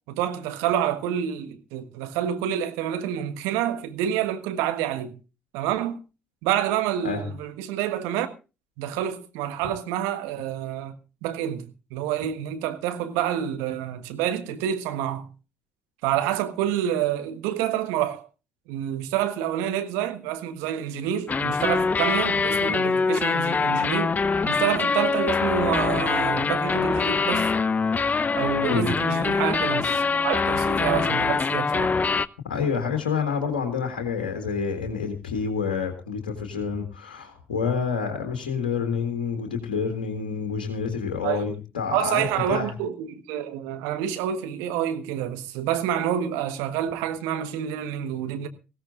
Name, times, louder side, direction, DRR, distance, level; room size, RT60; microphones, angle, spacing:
voice 1, 0.1-5.1 5.5-6.0 6.4-8.3 8.8-10.9 11.2-15.3 16.0-18.3 18.7-24.2 24.4-27.5 28.3-31.9 41.2-41.5 41.9-48.5, right 10 dB, 75° right, 1.4 m, -28 dB
sound 1, 21.3-32.3, left 4 dB, 35° left, 0.7 m, -24 dB
voice 2, 32.4-42.7, left 6 dB, 85° left, 1.8 m, -28 dB
20.0 x 16.0 x 2.5 m
hypercardioid pair, 45°, 5 cm